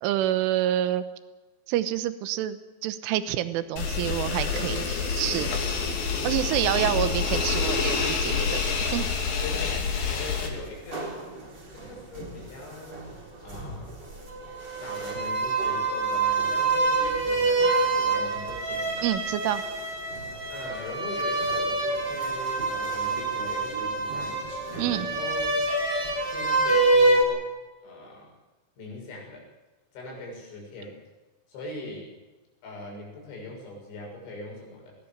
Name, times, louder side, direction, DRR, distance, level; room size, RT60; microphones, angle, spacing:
voice 1, 0.0-1.0 1.7-5.5 6.2-8.6 8.9-9.1 19.0-19.6 24.8-25.1, right 12 dB, 90° right, 12 dB, 3.6 m, -27 dB
sound 1, 3.8-10.5, left 5 dB, 55° left, 4.2 m, -27 dB
voice 2, 6.0-6.6 9.0-9.1 9.4-11.1 11.7-13.1 13.4-13.9 14.6-19.1 20.5-24.4 24.9-25.6 26.2-27.5 27.8-28.3 28.8-29.4 29.9-31.0 31.5-32.2 32.6-35.0, left 2 dB, 70° left, -1 dB, 8.9 m, -41 dB
sound 2, 10.7-13.2 13.5-27.2, right 3 dB, 25° right, 4.0 m, -26 dB
20.5 x 18.5 x 7.4 m, 1.2 s
omnidirectional pair, 5.5 m